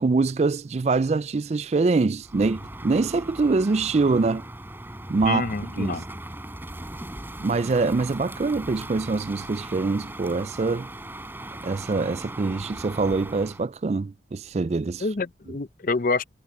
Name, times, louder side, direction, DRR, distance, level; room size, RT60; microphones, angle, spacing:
voice 1, 0.0-4.4 5.1-5.5 5.7-6.0 7.4-10.9 11.6-15.0, right 3 dB, 40° right, 0.4 m, -24 dB
Crow, 2.2-13.7, right 1 dB, 10° right, 4.2 m, -39 dB
voice 2, 5.2-6.0 15.0-16.2, left 3 dB, 50° left, 0.6 m, -27 dB
head